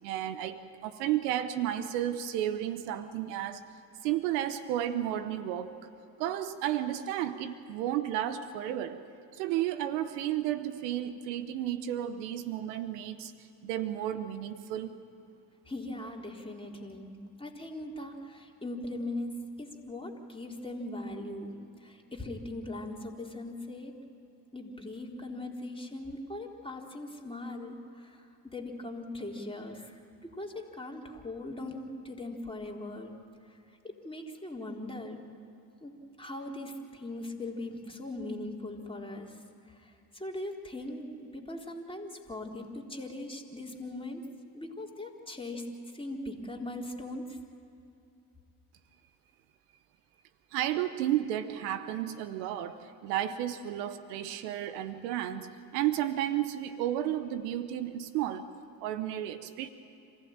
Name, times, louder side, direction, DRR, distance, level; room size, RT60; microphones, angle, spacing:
voice 1, 0.0-3.6 4.0-5.9 6.2-9.0 9.3-13.3 13.6-15.0 50.5-58.5 58.8-59.7, right 12 dB, 85° right, 12 dB, 1.1 m, -32 dB
voice 2, 15.7-24.0 24.5-28.3 28.5-33.1 33.5-33.6 33.8-35.2 35.8-35.9 36.2-39.4 39.7-44.3 44.5-45.7 45.9-47.4, left 1 dB, 10° left, 0 dB, 3.8 m, -40 dB
27.0 x 15.5 x 8.8 m, 2.7 s
hypercardioid pair, 60°, 48 cm